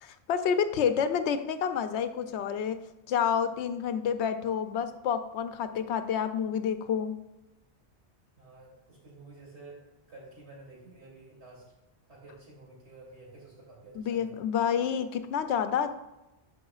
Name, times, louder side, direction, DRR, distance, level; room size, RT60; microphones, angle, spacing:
voice 1, 0.0-2.8 3.1-7.1 14.0-15.9, left 7 dB, 80° left, 10 dB, 0.9 m, -29 dB
voice 2, 8.3-11.7 12.1-14.3, right 2 dB, 75° right, -5 dB, 3.1 m, -51 dB
11.0 x 5.5 x 2.4 m, 1.0 s
omnidirectional pair, 1.1 m